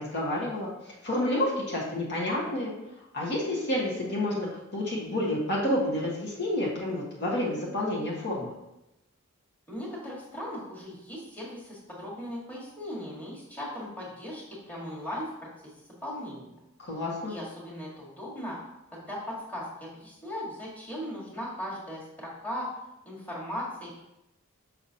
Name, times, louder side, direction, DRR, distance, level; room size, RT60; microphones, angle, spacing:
voice 1, 0.0-2.7 3.1-8.5 16.8-17.3, left 1 dB, 55° left, -4 dB, 1.4 m, -29 dB
voice 2, 9.7-15.7 16.0-16.6 17.3-18.6 18.9-22.7 23.0-24.0, equal, 10° left, -6 dB, 1.7 m, -38 dB
6.0 x 5.9 x 2.8 m, 0.90 s
head